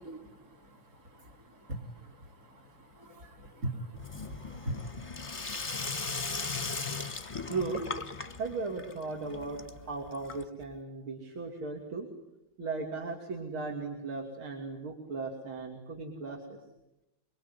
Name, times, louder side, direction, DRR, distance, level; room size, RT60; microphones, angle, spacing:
voice 1, 0.0-5.0, right 1 dB, 45° right, 5 dB, 4.6 m, -42 dB
Sink (filling or washing), 3.9-10.7, left 4 dB, 20° left, 1.0 m, -38 dB
voice 2, 7.5-7.8 8.4-12.1 12.6-16.6, right 3 dB, 80° right, 1 dB, 3.6 m, -37 dB
26.0 x 23.5 x 9.8 m, 0.90 s
omnidirectional pair, 2.3 m